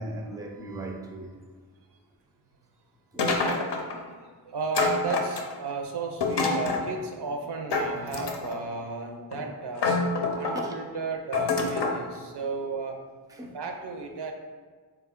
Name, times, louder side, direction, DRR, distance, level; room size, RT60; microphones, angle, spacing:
voice 1, 0.0-1.3 3.1-3.7 10.5-10.8 13.3-13.6, right 1 dB, 10° right, 2 dB, 0.4 m, -38 dB
sound 1, 3.2-4.0 4.7-5.7 6.2-6.9 7.7-8.6 9.3-9.4 9.8-10.7 11.3-12.0, left 3 dB, 75° left, 0.6 m, -27 dB
voice 2, 3.7-9.9 10.3-13.0 13.5-14.3, right 4 dB, 75° right, 3 dB, 0.6 m, -34 dB
3.7 x 2.2 x 3.6 m, 1.5 s
cardioid pair, 45°, 41 cm